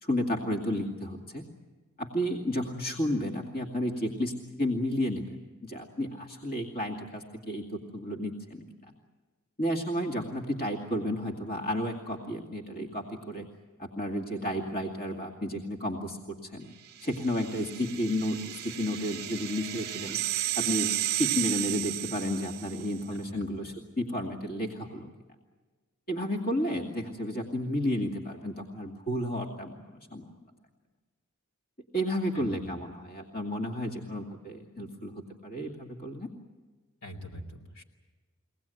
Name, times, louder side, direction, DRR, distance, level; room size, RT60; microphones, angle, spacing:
voice 1, 0.0-1.4 2.0-5.3 5.6-8.7 9.6-13.5 13.8-16.7 17.0-20.2 20.6-20.9 21.2-25.1 26.1-30.2 31.9-35.1 35.4-36.3, equal, 45° left, 0 dB, 2.4 m, -32 dB
sound 1, 17.0-23.0, right 14 dB, 50° right, 0.7 m, -33 dB
voice 2, 23.1-23.5 32.3-32.7 37.0-37.8, equal, 70° left, 1 dB, 3.3 m, -44 dB
23.5 x 18.5 x 9.2 m, 1.3 s
head